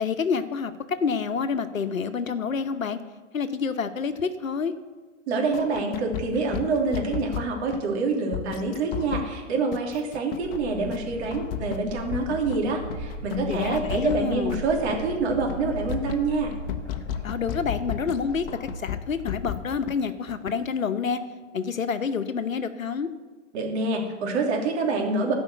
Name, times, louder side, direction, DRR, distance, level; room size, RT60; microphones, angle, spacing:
voice 1, 0.0-3.0 3.3-4.7 13.5-14.6 17.2-21.2 21.5-23.1, left 5 dB, 85° left, 10 dB, 1.0 m, -28 dB
voice 2, 5.3-16.5 23.5-25.3, right 3 dB, 55° right, 0 dB, 3.0 m, -26 dB
sound 1, 5.5-7.8 8.3-9.3 9.7-10.6 10.9-11.0 11.3-12.6 12.9-15.0 15.3-15.6 15.9-18.2 18.5-19.9 20.3-20.5, left 11 dB, 45° left, 1.0 m, -33 dB
sound 2, 10.4-20.0, left 1 dB, 5° left, 3.4 m, -38 dB
14.5 x 5.6 x 8.1 m, 1.4 s
hypercardioid pair, 115°, 39 cm